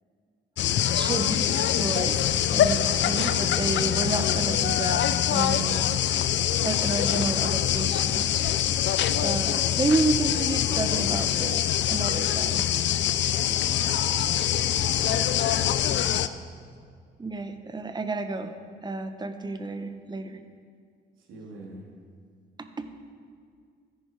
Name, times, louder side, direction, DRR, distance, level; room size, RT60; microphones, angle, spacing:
sound 1, 0.6-16.3, left 11 dB, 65° left, 0.6 m, -24 dB
voice 1, 0.9-5.0 5.3-5.8 6.6-8.3 9.2-12.6 17.2-18.5 18.8-20.4 22.6-22.9, right 3 dB, 20° right, 8 dB, 1.0 m, -30 dB
voice 2, 14.2-15.6 21.2-21.8, right 2 dB, 85° right, -2 dB, 2.8 m, -44 dB
14.0 x 10.5 x 4.7 m, 2.2 s
cardioid pair, 90°, 20 cm